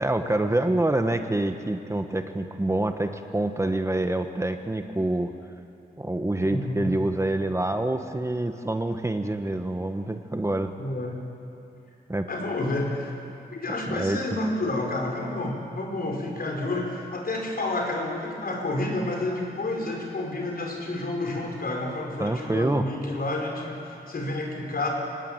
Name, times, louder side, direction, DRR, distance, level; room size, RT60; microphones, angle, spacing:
voice 1, 0.0-5.3 6.0-10.7 12.1-12.3 13.9-14.2 22.2-22.9, right 1 dB, 15° right, 7 dB, 1.1 m, -26 dB
voice 2, 6.4-6.9 10.8-11.2 12.3-13.1 13.5-24.9, left 2 dB, 65° left, 0 dB, 5.0 m, -30 dB
25.5 x 19.0 x 8.9 m, 2.6 s
wide cardioid pair, 105°, 17 cm